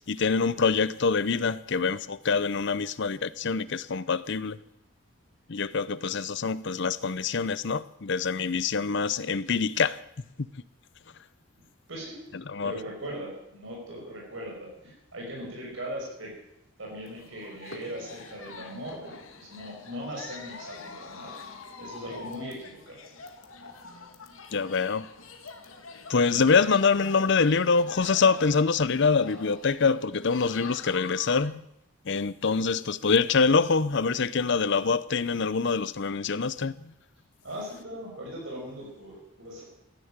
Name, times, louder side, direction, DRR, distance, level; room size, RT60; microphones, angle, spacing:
voice 1, 0.1-4.6 5.5-10.0 12.5-12.7 24.5-25.1 26.1-31.6 32.1-36.7, left 5 dB, 60° left, 0.7 m, -25 dB
voice 2, 11.9-12.3 12.6-16.3 16.8-21.3 21.8-23.0 37.4-39.6, equal, 65° right, 5.7 m, -39 dB
sound 1, 17.1-31.5, left 4 dB, 75° left, 2.0 m, -45 dB
15.0 x 10.5 x 8.9 m
head